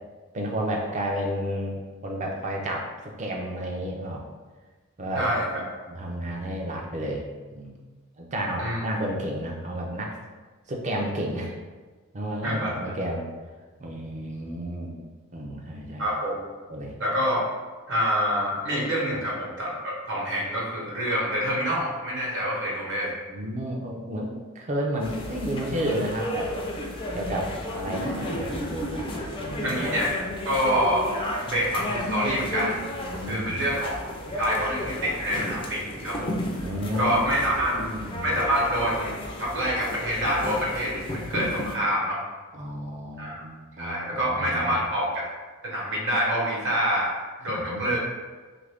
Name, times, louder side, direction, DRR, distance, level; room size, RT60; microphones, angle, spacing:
voice 1, 0.3-4.3 5.0-5.3 5.6-7.2 7.5-7.8 8.2-10.2 10.7-11.5 12.1-13.3 13.8-15.0 15.3-16.1 16.7-16.9 23.3-26.5 27.1-29.9 33.1-33.8 36.6-37.3 37.5-38.3 42.5-44.9 47.5-48.0, equal, 30° right, 0 dB, 0.5 m, -32 dB
voice 2, 5.1-5.6 8.6-8.9 12.4-12.7 16.0-16.4 17.0-17.4 17.9-23.1 29.6-30.1 30.4-31.1 31.5-32.8 33.3-33.9 34.3-36.3 37.0-37.8 38.2-39.1 39.4-42.2 43.2-43.4 43.8-45.3 45.6-47.1 47.4-48.0, equal, 55° right, -4 dB, 1.0 m, -26 dB
sound 1, 25.0-41.7, left 1 dB, 25° left, 0.4 m, -33 dB
3.0 x 2.5 x 3.4 m, 1.4 s
head